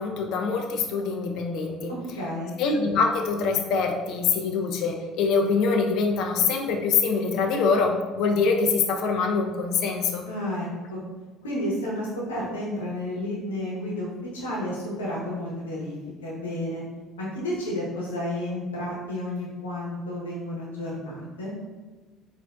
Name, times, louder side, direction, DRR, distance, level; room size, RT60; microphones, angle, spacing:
voice 1, 0.0-1.9 2.6-10.2, left 4 dB, 60° left, 3 dB, 0.4 m, -24 dB
voice 2, 1.9-2.5 10.3-11.0 11.4-16.0 16.2-16.8 17.2-21.5, left 1 dB, 85° left, -5 dB, 0.9 m, -31 dB
4.2 x 2.5 x 2.3 m, 1.3 s
hypercardioid pair, 60°, 0 cm